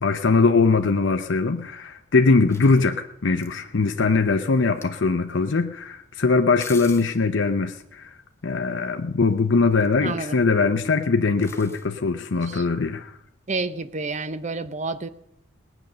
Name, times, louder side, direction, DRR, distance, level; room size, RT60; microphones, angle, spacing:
voice 1, 0.0-8.1 8.4-13.1, left 4 dB, 65° left, 6 dB, 0.6 m, -21 dB
sound 1, 2.5-3.5 4.4-5.0 6.5-7.2 9.6-10.2 11.4-11.9 13.4-13.5, left 5 dB, 15° left, 0.9 m, -43 dB
voice 2, 10.0-10.4 12.3-12.7 13.5-15.1, right 3 dB, 35° right, 13 dB, 0.7 m, -30 dB
18.5 x 9.0 x 6.7 m, 0.82 s
head